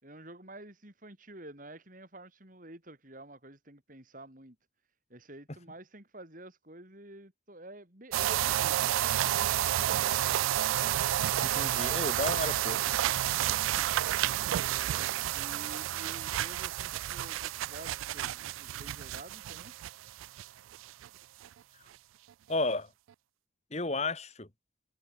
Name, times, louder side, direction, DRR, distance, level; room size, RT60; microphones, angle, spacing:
voice 1, 0.0-4.6 5.1-10.5 14.5-19.7, right 1 dB, 40° right, 4.1 m, -50 dB
sound 1, 8.1-20.5 20.7-21.1 21.4-21.5, right 13 dB, 85° right, 0.3 m, -30 dB
voice 2, 11.4-12.8 22.5-22.9 23.7-24.5, left 2 dB, 35° left, 1.8 m, -32 dB
head